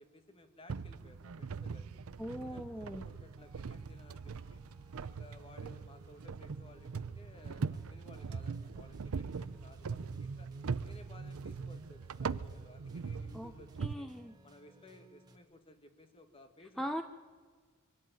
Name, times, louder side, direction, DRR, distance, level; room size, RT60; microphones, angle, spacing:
voice 1, 0.0-2.0 2.3-4.6 5.0-10.5 10.8-14.1 14.4-16.9, left 1 dB, 25° left, 7 dB, 1.6 m, -58 dB
sound 1, 0.7-13.9, right 5 dB, 70° right, 0.5 m, -41 dB
voice 2, 2.2-3.0 13.3-13.5 13.8-14.3 16.8-17.0, equal, ahead, 7 dB, 0.7 m, -39 dB
sound 2, 2.4-15.4, right 1 dB, 20° right, 1.6 m, -64 dB
24.0 x 12.0 x 9.1 m, 1.5 s
head